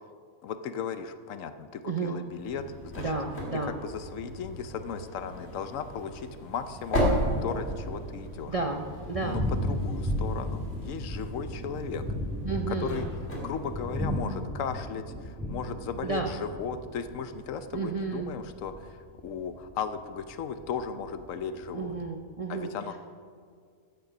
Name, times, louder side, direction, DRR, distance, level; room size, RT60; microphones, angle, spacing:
voice 1, 0.4-3.0 3.8-7.0 7.4-8.5 9.2-12.1 12.7-13.1 13.4-19.0 19.2-21.9 22.5-23.0, left 6 dB, 70° left, 10 dB, 1.0 m, -36 dB
sound 1, 2.4-14.4, equal, 45° left, 2.5 m, -35 dB
voice 2, 3.0-3.7 8.5-9.4 12.4-13.1 16.0-16.3 17.7-18.3 21.7-22.7, right 4 dB, 45° right, 2 dB, 0.4 m, -32 dB
Thunder, 6.8-22.1, equal, ahead, 1.3 m, -36 dB
14.0 x 6.9 x 5.9 m, 2.1 s
omnidirectional pair, 1.5 m